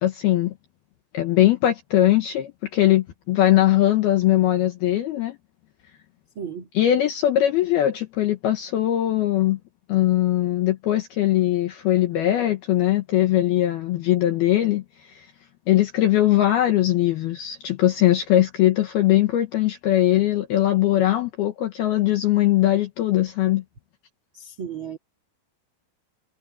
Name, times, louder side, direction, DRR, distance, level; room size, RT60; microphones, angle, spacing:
voice 1, 0.0-0.5 1.1-5.4 6.8-9.6 9.9-14.8 15.2-15.3 15.7-23.6, left 13 dB, 75° left, 2.4 m, -20 dB
voice 2, 6.3-6.7 24.3-25.0, right 7 dB, 55° right, 1.4 m, -34 dB
omnidirectional pair, 5.9 m